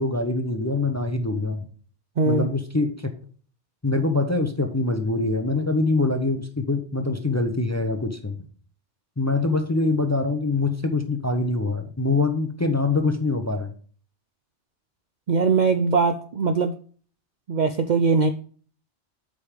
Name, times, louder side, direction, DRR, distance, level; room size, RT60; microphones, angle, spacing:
voice 1, 0.0-1.7 2.3-3.1 3.8-8.5 9.2-13.7, left 3 dB, 15° left, 7 dB, 0.7 m, -24 dB
voice 2, 2.2-2.5 15.3-16.7 17.5-18.3, right 4 dB, 50° right, 8 dB, 0.5 m, -21 dB
8.1 x 5.2 x 5.1 m, 0.43 s
omnidirectional pair, 1.2 m